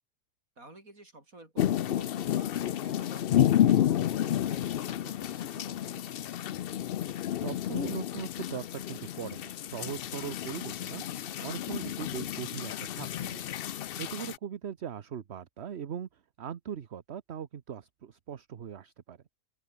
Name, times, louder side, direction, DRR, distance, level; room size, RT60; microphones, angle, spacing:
voice 1, 0.6-6.3 14.1-14.3, right 2 dB, 90° right, 6.6 m, -52 dB
sound 1, 1.6-14.4, left 11 dB, 60° left, 0.6 m, -30 dB
voice 2, 7.4-13.6 14.0-19.2, right 8 dB, 55° right, 1.2 m, -40 dB
open air
omnidirectional pair, 1.4 m